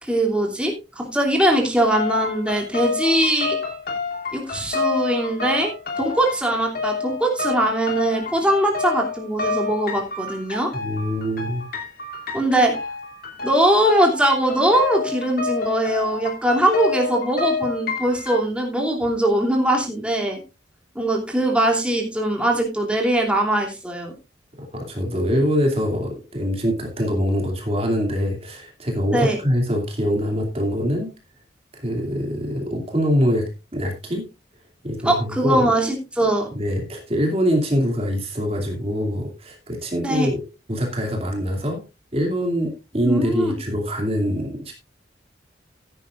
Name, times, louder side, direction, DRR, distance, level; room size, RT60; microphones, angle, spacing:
voice 1, 0.0-3.6 4.3-5.7 6.0-10.7 12.3-12.7 13.4-20.4 20.9-24.1 29.1-29.4 35.0-36.5 40.0-40.3 43.0-43.5, right 1 dB, 5° right, 0 dB, 2.9 m, -21 dB
sound 1, 1.9-18.4, left 4 dB, 50° left, 2.9 m, -29 dB
voice 2, 10.7-11.7 24.7-31.1 31.7-34.2 34.8-35.7 36.5-41.8 42.1-44.8, equal, 35° right, 2 dB, 2.6 m, -24 dB
15.5 x 10.5 x 2.5 m, 0.27 s
head